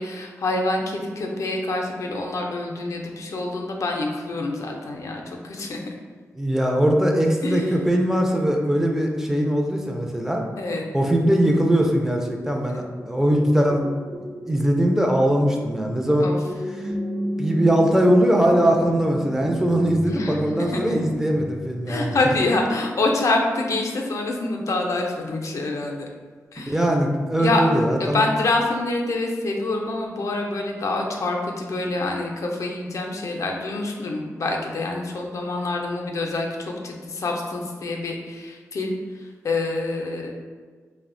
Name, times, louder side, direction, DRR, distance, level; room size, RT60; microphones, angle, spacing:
voice 1, 0.0-5.8 7.4-7.6 10.6-10.9 16.2-16.4 20.1-21.0 21.9-26.1 26.5-26.8 27.4-27.6 28.0-38.9 39.4-40.3, left 2 dB, 65° left, 1 dB, 0.4 m, -26 dB
voice 2, 6.3-10.4 10.9-13.9 14.2-16.3 17.4-22.3 26.6-28.2, right 1 dB, 10° right, 1 dB, 0.4 m, -21 dB
sound 1, 12.8-22.0, equal, 85° right, 0.7 m, -34 dB
2.6 x 2.0 x 2.5 m, 1.5 s
cardioid pair, 55°, 6 cm